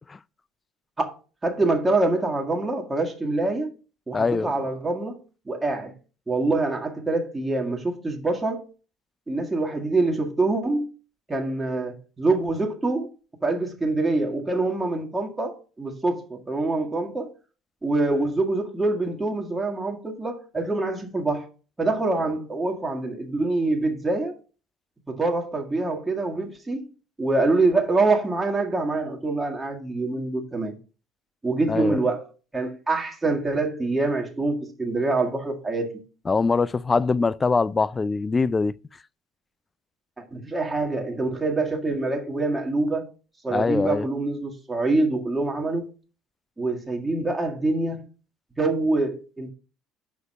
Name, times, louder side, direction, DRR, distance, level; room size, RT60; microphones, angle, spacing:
voice 1, 1.4-3.7 4.1-5.9 6.3-8.6 9.3-10.9 11.3-13.1 13.4-17.3 17.8-21.5 21.8-24.3 25.1-26.9 27.2-30.8 31.4-32.2 32.5-36.0 40.2-43.1 43.4-45.9 46.6-48.0 48.6-49.5, right 2 dB, 15° right, 1.8 m, -25 dB
voice 2, 4.1-4.5 31.7-32.0 36.3-38.7 43.5-44.1, left 4 dB, 25° left, 0.4 m, -23 dB
6.4 x 5.0 x 5.3 m
hypercardioid pair, 65°, 0 cm